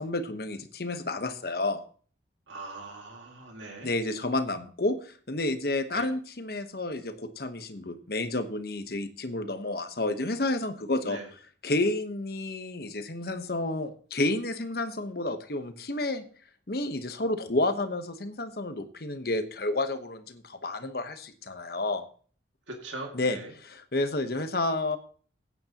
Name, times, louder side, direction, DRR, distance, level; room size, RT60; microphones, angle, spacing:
voice 1, 0.0-1.8 3.8-11.2 11.6-16.2 16.7-22.0 23.1-23.4 23.6-25.0, left 2 dB, 55° left, 9 dB, 1.1 m, -30 dB
voice 2, 2.5-3.9 5.9-6.1 11.0-11.3 22.7-23.5, right 2 dB, 85° right, 2 dB, 2.2 m, -41 dB
15.0 x 9.6 x 2.9 m, 0.43 s
head